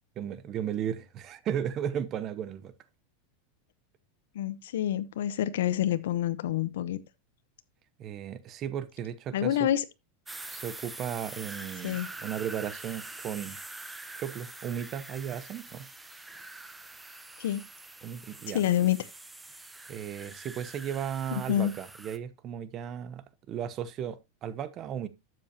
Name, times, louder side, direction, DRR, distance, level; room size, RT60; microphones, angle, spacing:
voice 1, 0.2-2.7 8.0-9.7 10.5-13.6 14.2-15.9 18.0-18.6 19.9-25.1, right 9 dB, 35° right, 0.9 m, -35 dB
voice 2, 4.3-7.0 9.3-9.8 11.8-12.1 17.4-17.6 18.5-19.0 21.3-21.7, left 11 dB, 80° left, 0.9 m, -27 dB
sound 1, 10.3-22.2, right 2 dB, 5° right, 0.9 m, -45 dB
12.0 x 7.8 x 2.9 m
supercardioid pair, 145°, 0 cm